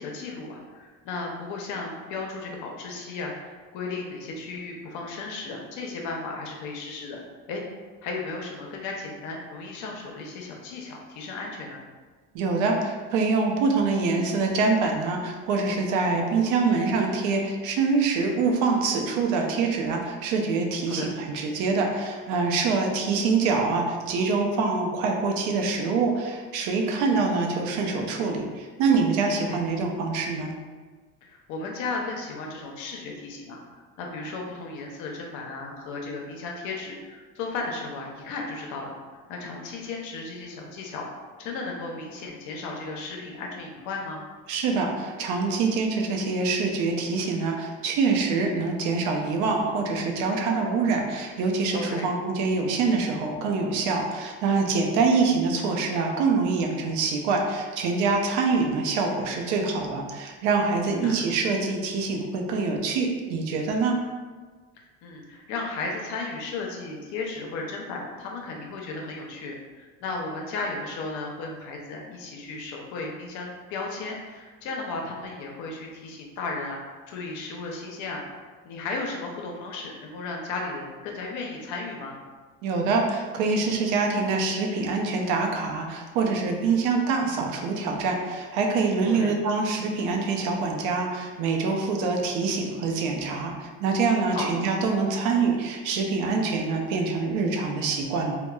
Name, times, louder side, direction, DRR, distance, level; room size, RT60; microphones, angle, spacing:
voice 1, 0.0-7.2 7.5-7.6 8.0-11.8 16.3-16.8 20.9-21.1 29.4-29.6 31.2-33.6 34.0-38.9 39.3-41.1 41.4-44.2 51.7-52.1 60.9-61.3 65.0-82.2 89.1-89.3 94.3-94.5, left 3 dB, 75° left, 0 dB, 0.6 m, -35 dB
voice 2, 12.3-30.5 44.5-64.0 82.6-98.4, right 4 dB, 80° right, 2 dB, 0.5 m, -25 dB
3.0 x 2.0 x 2.3 m, 1.4 s
cardioid pair, 105°, 30 cm